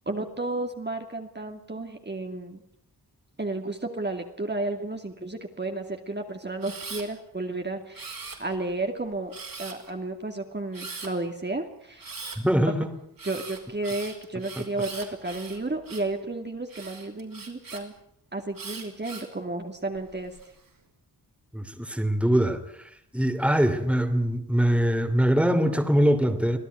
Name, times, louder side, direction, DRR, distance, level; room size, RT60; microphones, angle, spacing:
voice 1, 0.1-2.6 3.4-9.3 9.6-12.1 13.2-17.9 18.3-20.3, right 2 dB, 25° right, 4 dB, 2.5 m, -32 dB
Camera, 6.6-7.1 7.9-8.7 9.3-9.9 10.7-11.1 12.0-12.4 13.2-16.1 16.7-17.8 18.6-19.3 20.0-20.5, right 4 dB, 60° right, 5.3 m, -40 dB
voice 2, 12.4-12.9 21.5-26.6, equal, 5° right, 8 dB, 2.8 m, -23 dB
26.0 x 17.0 x 9.5 m, 0.72 s
wide cardioid pair, 105°, 39 cm